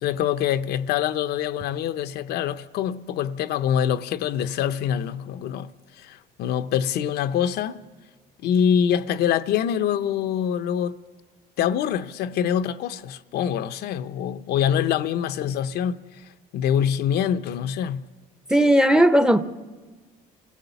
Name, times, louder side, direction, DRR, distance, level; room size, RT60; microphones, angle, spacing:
voice 1, 0.0-5.7 6.0-7.8 8.4-11.0 11.6-16.0 16.5-18.0, left 9 dB, 75° left, 0.7 m, -25 dB
voice 2, 18.5-19.4, equal, 5° right, 0.7 m, -16 dB
27.0 x 16.0 x 7.0 m
cardioid pair, 110°, 17 cm